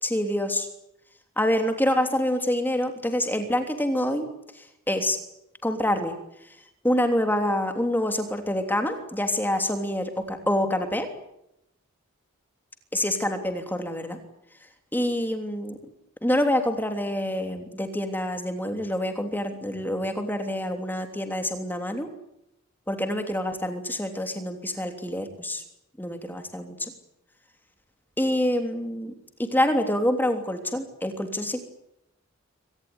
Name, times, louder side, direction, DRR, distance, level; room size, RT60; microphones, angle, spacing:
voice 1, 0.0-0.7 1.4-4.3 4.9-5.2 5.6-6.2 6.8-11.1 12.9-14.2 14.9-15.8 16.2-22.1 22.9-25.6 26.0-26.9 28.2-29.1 29.4-31.6, left 1 dB, 10° left, 6 dB, 3.1 m, -26 dB
24.5 x 18.5 x 9.7 m, 0.82 s
head